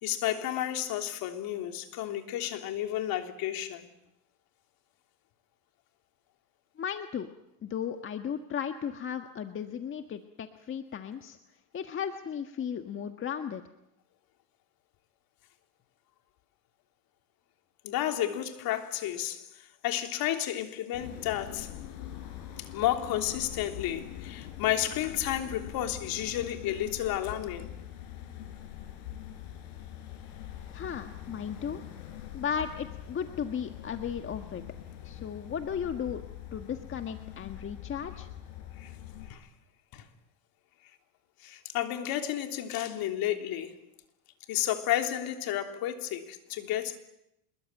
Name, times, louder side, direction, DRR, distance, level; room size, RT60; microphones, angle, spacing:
voice 1, 0.0-3.9 17.8-21.7 22.6-27.7 38.8-38.9 39.3-39.5 39.9-40.0 41.4-43.8 44.5-47.0, left 12 dB, 45° left, 3.4 m, -32 dB
voice 2, 6.8-7.3 7.6-11.4 11.7-13.6 30.7-31.8 32.3-34.6 35.0-36.2 36.5-38.3, left 8 dB, 25° left, 1.5 m, -35 dB
sound 1, 20.9-39.3, left 11 dB, 65° left, 6.9 m, -43 dB
26.5 x 22.0 x 9.1 m
supercardioid pair, 120°, 49 cm